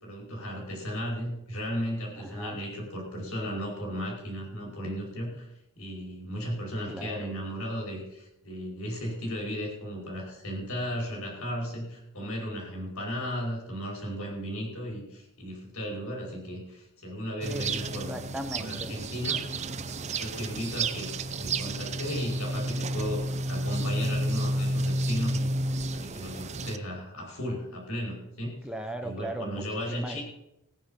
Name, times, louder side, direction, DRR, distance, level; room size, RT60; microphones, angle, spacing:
voice 1, 0.0-5.5 5.8-18.1 18.6-19.4 20.1-21.1 21.4-25.5 25.9-28.7 29.0-30.2, equal, 75° left, -1 dB, 5.0 m, -35 dB
voice 2, 2.2-2.6 6.9-7.3 17.4-17.7 18.1-19.0 28.6-30.2, right 1 dB, 5° right, 6 dB, 0.9 m, -37 dB
sound 1, 17.4-26.8, right 2 dB, 30° right, 0.6 m, -31 dB
17.0 x 9.4 x 5.6 m, 0.85 s
head